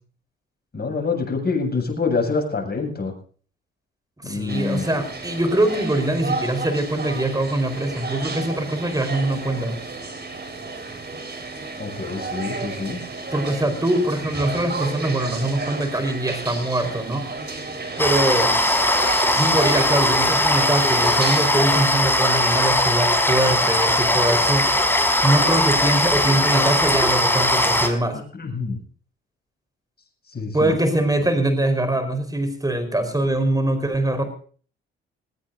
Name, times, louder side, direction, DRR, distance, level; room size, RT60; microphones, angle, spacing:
voice 1, 0.7-3.1 4.2-4.9 11.8-13.0 28.3-28.8 30.3-30.7 31.2-31.4, left 4 dB, 30° left, 2 dB, 7.6 m, -26 dB
voice 2, 4.2-9.8 13.3-17.2 18.0-18.5 19.3-24.7 25.2-28.2 30.5-34.2, right 1 dB, 10° right, 7 dB, 4.6 m, -23 dB
sound 1, 4.5-21.6, right 3 dB, 35° right, 4.8 m, -32 dB
sound 2, 18.0-27.9, left 1 dB, 5° left, 5.0 m, -19 dB
20.5 x 19.5 x 2.7 m, 0.44 s
hypercardioid pair, 45°, 30 cm